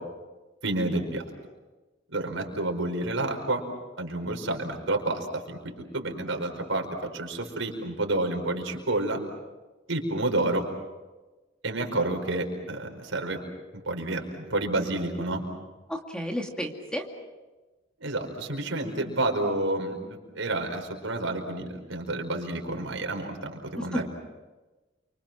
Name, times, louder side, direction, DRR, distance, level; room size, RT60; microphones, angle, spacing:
voice 1, 0.6-1.2 2.1-3.6 4.0-9.2 9.9-10.6 11.6-13.4 13.7-15.4 18.0-24.1, right 2 dB, 85° right, 3 dB, 5.0 m, -29 dB
voice 2, 15.9-17.0 23.8-24.1, equal, 5° left, 2 dB, 2.3 m, -32 dB
29.5 x 25.0 x 6.1 m, 1.2 s
head